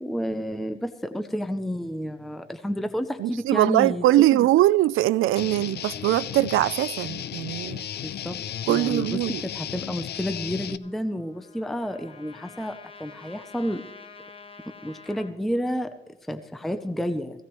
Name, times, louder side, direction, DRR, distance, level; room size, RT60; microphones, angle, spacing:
voice 1, 0.0-4.0 4.3-4.5 8.0-8.4 8.7-13.9 14.8-17.4, equal, ahead, 0.5 m, -30 dB
voice 2, 3.2-7.8 8.7-9.4, right 15 dB, 85° right, 0.5 m, -21 dB
Guitar, 5.4-10.8, left 10 dB, 55° left, 0.6 m, -34 dB
Trumpet, 10.8-15.3, left 5 dB, 25° left, 0.9 m, -47 dB
17.5 x 16.5 x 3.0 m
cardioid pair, 155°, 20 cm